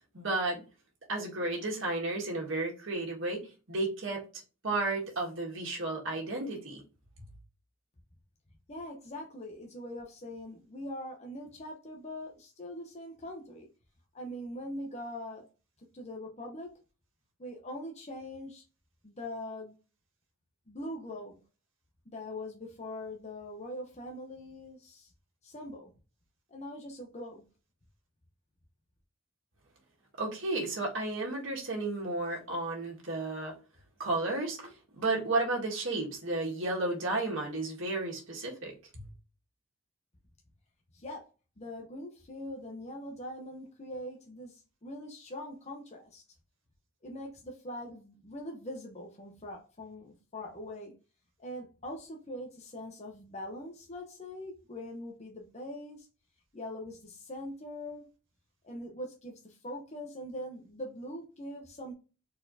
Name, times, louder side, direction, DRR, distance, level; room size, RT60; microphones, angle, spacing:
voice 1, 0.1-0.6 1.1-4.2 4.6-6.8 30.2-33.5 34.0-39.1, right 2 dB, 65° right, 1.9 m, -33 dB
voice 2, 8.7-13.7 14.1-15.5 15.9-16.8 17.4-18.6 19.0-19.8 20.7-21.4 22.1-25.1 25.4-25.9 26.5-27.4 40.9-41.3 41.6-46.2 47.0-51.0 51.4-56.1 56.5-58.1 58.6-61.9, left 1 dB, 30° left, 0.8 m, -42 dB
4.5 x 4.2 x 2.7 m
head